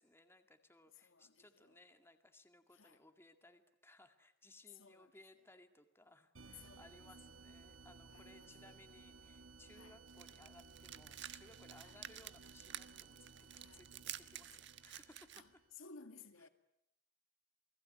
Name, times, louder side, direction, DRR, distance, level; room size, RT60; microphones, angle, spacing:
voice 1, 0.0-13.4 13.7-15.4, left 2 dB, 10° left, 2.1 m, -63 dB
voice 2, 1.0-1.8 2.7-3.0 4.7-5.1 6.5-7.3 8.1-8.8 9.7-10.0 11.7-12.0 13.5-13.8 15.3-16.5, left 5 dB, 75° left, 2.2 m, -59 dB
sound 1, 6.3-15.7, right 4 dB, 75° right, 1.6 m, -59 dB
sound 2, 10.1-15.4, right 11 dB, 60° right, 1.4 m, -51 dB
29.0 x 21.0 x 9.7 m
head